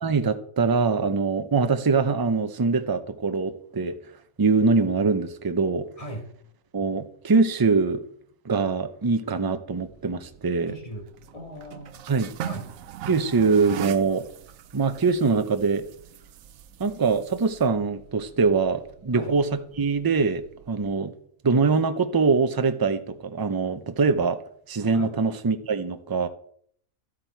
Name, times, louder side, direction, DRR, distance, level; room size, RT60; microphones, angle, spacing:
voice 1, 0.0-3.9 4.4-5.9 6.7-8.0 8.4-10.7 12.1-12.4 13.1-14.3 14.7-15.8 16.8-19.5 19.8-21.1 21.4-24.4 24.7-26.3, right 4 dB, 30° right, 9 dB, 0.4 m, -23 dB
sound 1, 9.7-20.9, right 11 dB, 75° right, 1.0 m, -42 dB
voice 2, 10.7-11.0 11.3-12.0 12.4-12.7 19.1-19.3 24.9-25.1, equal, 25° left, 1 dB, 2.4 m, -38 dB
12.5 x 8.7 x 4.5 m, 0.63 s
omnidirectional pair, 1.5 m